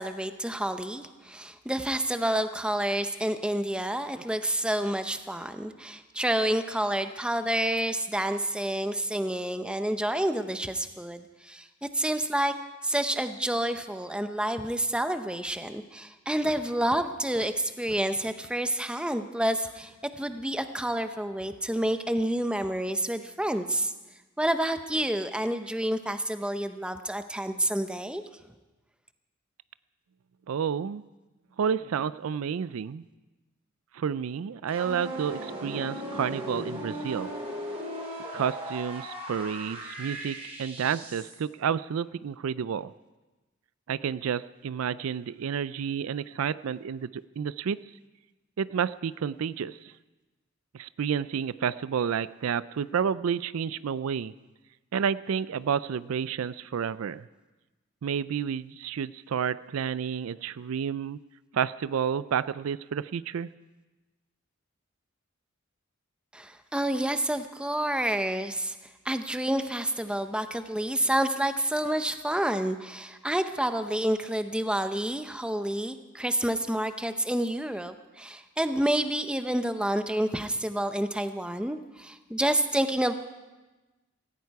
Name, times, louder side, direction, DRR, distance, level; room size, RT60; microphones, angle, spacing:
voice 1, 0.0-11.7 11.9-12.5 12.8-23.9 24.4-28.2 66.3-68.8 69.0-83.1, right 1 dB, 5° right, 9 dB, 0.7 m, -29 dB
voice 2, 30.5-31.0 31.6-33.0 33.9-37.3 38.3-42.9 43.9-47.8 48.6-49.8 50.7-54.3 54.9-57.3 58.0-61.2 61.5-63.5, right 7 dB, 85° right, 17 dB, 0.4 m, -30 dB
sound 1, 34.7-41.4, equal, 30° right, 3.4 m, -38 dB
17.5 x 15.5 x 4.7 m, 1.2 s
head